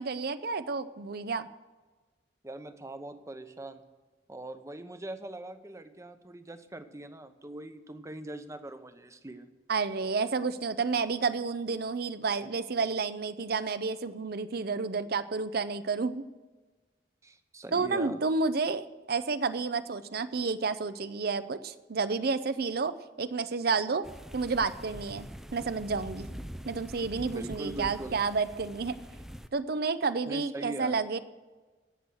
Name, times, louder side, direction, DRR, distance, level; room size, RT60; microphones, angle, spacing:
voice 1, 0.0-1.5 9.7-16.2 17.7-24.0 24.3-25.3 25.5-26.3 26.7-28.9 29.5-31.2, right 4 dB, 60° right, 13 dB, 0.6 m, -30 dB
voice 2, 2.4-3.8 4.3-9.5 17.2-18.2 27.2-28.1 30.3-31.0, right 1 dB, 15° right, 9 dB, 0.9 m, -42 dB
sound 1, 24.0-29.5, equal, ahead, 0.5 m, -44 dB
16.5 x 6.3 x 7.8 m, 1.3 s
head